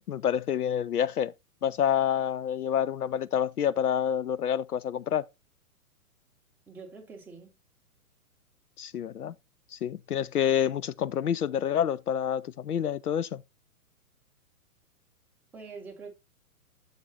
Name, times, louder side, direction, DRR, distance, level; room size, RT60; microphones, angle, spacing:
voice 1, 0.0-1.3 1.6-5.2 8.8-9.3 9.7-13.4, left 9 dB, 75° left, 0.5 m, -28 dB
voice 2, 6.7-7.5 15.5-16.1, right 4 dB, 5° right, 0.7 m, -44 dB
6.6 x 4.5 x 4.0 m
figure-of-eight pair, 115°, 45 cm